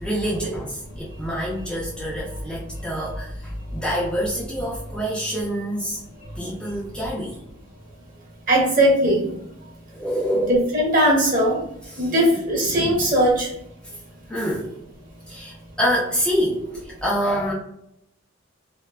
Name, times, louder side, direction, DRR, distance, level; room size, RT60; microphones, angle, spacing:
voice 1, 0.0-6.0 6.4-7.4 9.9-10.5 11.9-12.1 12.6-13.0 14.3-14.7 15.3-16.6 17.0-17.5, equal, 5° left, -6 dB, 0.4 m, -26 dB
voice 2, 8.5-9.3 10.7-11.6 12.0-13.5, right 1 dB, 45° right, -4 dB, 0.9 m, -19 dB
2.5 x 2.2 x 2.2 m, 0.78 s
head